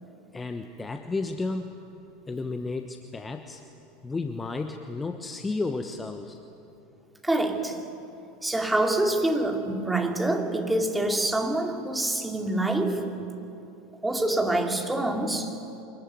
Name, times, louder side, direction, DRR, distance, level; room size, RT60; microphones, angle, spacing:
voice 1, 0.3-1.8 2.3-3.6 4.0-6.4, left 3 dB, 15° left, 7 dB, 1.1 m, -32 dB
voice 2, 7.2-7.9 8.4-13.1 14.0-15.6, right 2 dB, 10° right, 3 dB, 2.7 m, -26 dB
24.5 x 21.5 x 9.4 m, 2.9 s
figure-of-eight pair, 80°, 0 cm